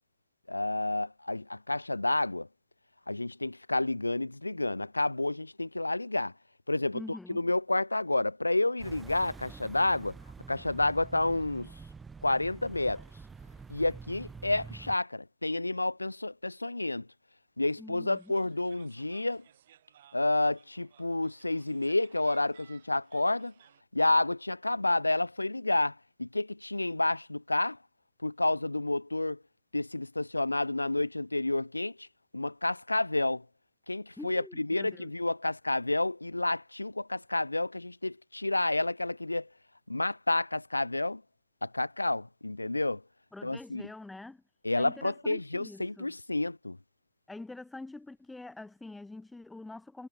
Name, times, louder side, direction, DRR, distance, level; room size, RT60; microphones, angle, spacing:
voice 1, 0.5-2.5 3.1-6.3 6.7-10.1 10.5-11.7 12.2-13.0 13.7-17.1 17.6-19.4 20.1-23.5 23.9-27.8 28.2-29.4 29.7-32.1 32.3-33.4 33.9-39.5 39.9-41.2 41.6-43.0 43.4-43.8 44.6-46.8, left 2 dB, 85° left, 1.1 m, -30 dB
voice 2, 6.9-7.4 17.8-18.4 34.2-35.1 43.3-44.4 44.8-46.1 47.3-50.1, left 2 dB, 5° left, 1.9 m, -45 dB
sound 1, 8.8-15.0, right 5 dB, 15° right, 1.0 m, -47 dB
sound 2, 18.1-23.8, right 11 dB, 60° right, 5.3 m, -61 dB
figure-of-eight pair, 90°, 0 cm